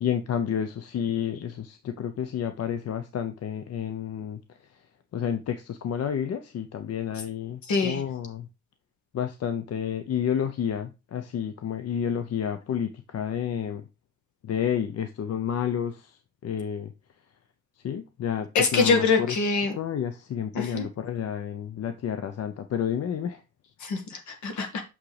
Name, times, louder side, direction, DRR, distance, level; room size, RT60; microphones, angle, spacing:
voice 1, 0.0-4.4 5.1-8.5 9.1-13.8 14.4-16.9 17.8-19.3 19.8-23.4, left 8 dB, 55° left, 0.8 m, -30 dB
voice 2, 7.7-8.0 18.6-19.7 20.5-20.9 23.8-24.8, left 4 dB, 70° left, 1.8 m, -24 dB
6.4 x 6.0 x 3.3 m
cardioid pair, 90°, 30 cm